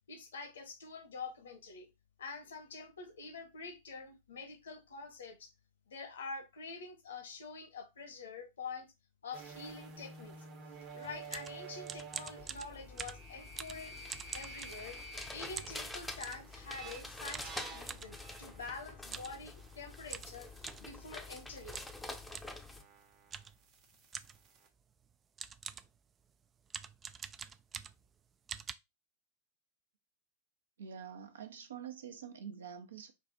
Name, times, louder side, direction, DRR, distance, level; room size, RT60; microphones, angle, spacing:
voice 1, 0.1-1.9 2.2-5.5 5.9-8.9 9.2-10.3 10.9-14.0 14.3-15.0 15.3-21.9, left 4 dB, 65° left, 1.0 m, -46 dB
sound 1, 9.3-20.9 21.2-24.7, right 3 dB, 35° right, 1.0 m, -52 dB
sound 2, 11.0-15.2 15.6-16.5 17.3-18.1 19.0-19.4 19.7-19.8 20.1-20.9 21.7-22.0 22.3-22.6 23.3-23.6 24.1-24.5 25.0-25.1 25.4-26.0 26.7-28.1 28.5-28.7, right 7 dB, 20° right, 0.3 m, -45 dB
sound 3, 12.4-22.8, left 2 dB, 5° left, 0.7 m, -47 dB
voice 2, 30.8-33.1, right 8 dB, 65° right, 0.8 m, -46 dB
5.0 x 2.4 x 3.9 m
figure-of-eight pair, 90°, 0 cm